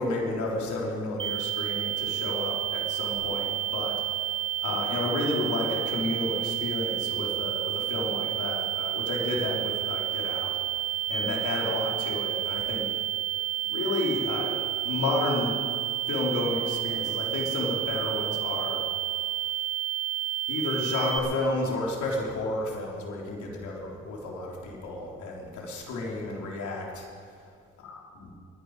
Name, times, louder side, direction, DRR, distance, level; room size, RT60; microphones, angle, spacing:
voice 1, 0.0-4.2 4.6-10.5 11.1-12.9 13.7-15.5 16.1-18.8 20.5-27.1, left 2 dB, 75° left, -2 dB, 3.7 m, -31 dB
sound 1, 1.2-21.2, right 13 dB, 40° right, 1.4 m, -30 dB
22.5 x 10.5 x 4.9 m, 2.4 s
cardioid pair, 90°, 30 cm